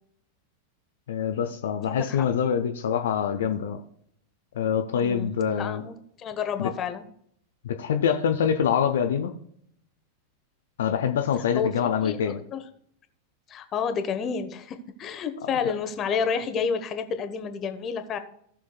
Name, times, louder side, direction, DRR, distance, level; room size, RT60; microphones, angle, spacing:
voice 1, 1.1-3.8 4.6-5.8 6.6-6.7 7.6-9.3 10.8-12.4, left 8 dB, 60° left, 6 dB, 0.7 m, -25 dB
voice 2, 1.8-2.3 4.9-5.3 5.6-7.0 11.5-12.6 13.5-18.2, left 6 dB, 30° left, 9 dB, 1.1 m, -30 dB
17.0 x 6.3 x 2.3 m, 0.69 s
figure-of-eight pair, 90°, 0 cm